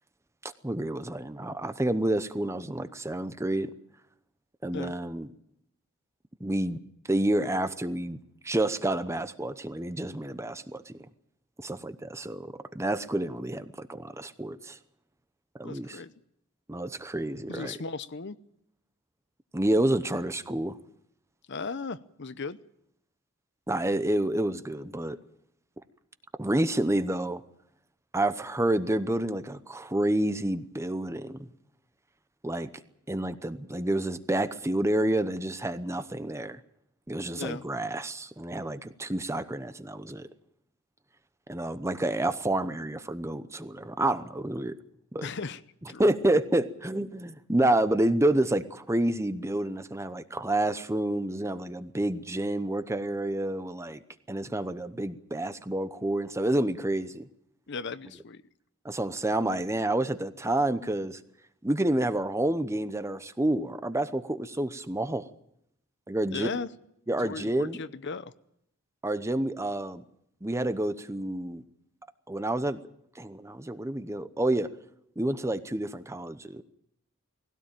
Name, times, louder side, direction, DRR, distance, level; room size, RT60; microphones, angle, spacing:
voice 1, 0.4-3.7 4.6-5.3 6.4-6.8 7.1-8.2 8.4-10.9 11.6-14.8 15.6-16.0 16.7-17.8 19.5-20.8 23.7-25.2 26.4-27.4 28.1-31.5 32.4-32.7 33.1-36.6 37.1-40.3 41.5-44.7 45.1-45.3 46.0-54.0 54.3-57.3 58.8-61.2 61.6-65.3 66.1-66.5 67.1-67.8 69.0-70.0 70.4-71.6 72.3-72.8 73.2-74.7 75.2-76.6, right 1 dB, 15° right, 12 dB, 0.8 m, -29 dB
voice 2, 15.6-16.1 17.5-18.4 21.5-22.6 37.3-37.6 45.2-45.6 45.9-46.1 57.7-58.4 66.3-66.7 67.2-68.3, left 4 dB, 55° left, 14 dB, 0.8 m, -36 dB
20.0 x 16.5 x 8.9 m, 0.76 s
head